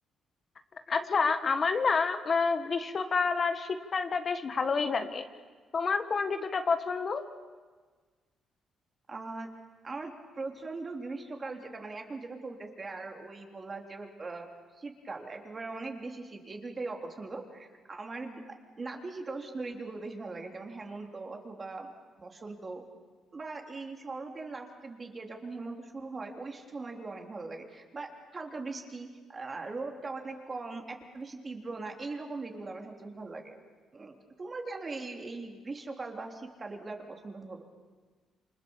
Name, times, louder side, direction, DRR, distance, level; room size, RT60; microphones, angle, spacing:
voice 1, 0.9-5.2 5.7-7.3, left 4 dB, 40° left, 8 dB, 1.5 m, -28 dB
voice 2, 9.1-9.5 9.8-14.5 14.7-21.9 22.2-22.8 23.3-33.6 33.9-37.7, right 3 dB, 30° right, 2 dB, 3.6 m, -40 dB
28.0 x 25.5 x 7.3 m, 1.4 s
cardioid pair, 90°, 0 cm